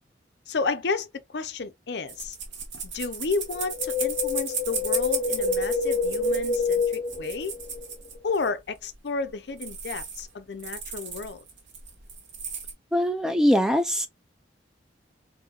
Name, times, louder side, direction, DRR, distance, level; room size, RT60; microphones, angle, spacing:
voice 1, 0.5-2.4 2.8-7.5 8.2-11.4, left 4 dB, 65° left, 0.5 m, -32 dB
sound 1, 2.1-8.5 8.9-9.0 9.3-9.4 9.6-10.3 10.6-12.7, right 6 dB, 90° right, 1.0 m, -35 dB
Wind, 3.6-7.9 8.2-8.3, left 4 dB, 30° left, 1.0 m, -27 dB
voice 2, 12.9-14.1, equal, 5° right, 0.4 m, -22 dB
4.2 x 2.6 x 2.3 m
head